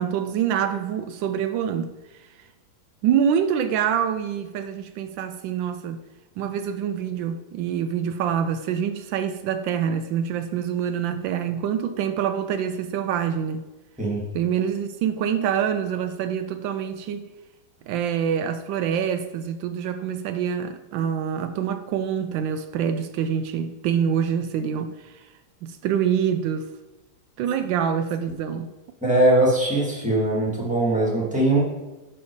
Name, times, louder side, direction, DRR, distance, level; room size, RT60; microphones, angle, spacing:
voice 1, 0.0-1.9 3.0-6.0 6.4-13.6 14.3-17.3 17.9-25.2 25.6-26.7 27.4-28.7, right 8 dB, 80° right, 1.3 m, -26 dB
voice 2, 29.0-31.6, right 1 dB, 5° right, 2.0 m, -21 dB
10.5 x 4.4 x 4.7 m
omnidirectional pair, 2.1 m